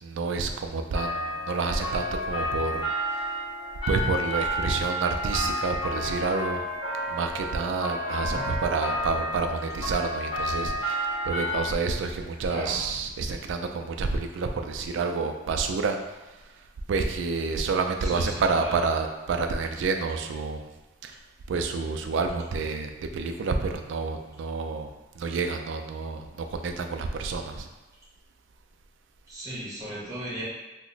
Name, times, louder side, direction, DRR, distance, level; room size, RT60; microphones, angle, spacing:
voice 1, 0.0-2.8 3.1-3.2 3.9-6.7 7.1-16.2 16.9-20.7 21.0-21.2 21.5-24.9 25.2-27.7, right 4 dB, 70° right, 5 dB, 0.3 m, -29 dB
sound 1, 0.9-11.6, equal, 25° left, 0.9 m, -31 dB
voice 2, 18.0-18.8 29.3-30.4, right 1 dB, 15° right, -7 dB, 0.8 m, -36 dB
2.9 x 2.1 x 3.9 m, 1.1 s
head